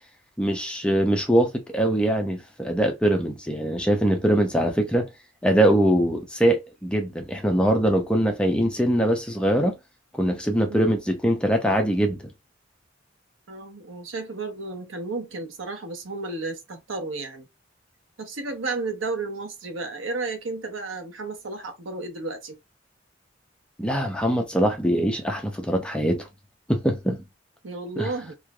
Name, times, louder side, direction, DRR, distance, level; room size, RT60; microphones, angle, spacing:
voice 1, 0.4-5.1 5.4-9.7 10.1-12.2 23.8-26.3 26.7-27.2 28.0-28.1, right 1 dB, 5° left, 0.5 m, -22 dB
voice 2, 13.5-17.5 18.2-22.6 27.6-28.3, right 3 dB, 90° right, 0.8 m, -33 dB
3.1 x 2.5 x 2.2 m
head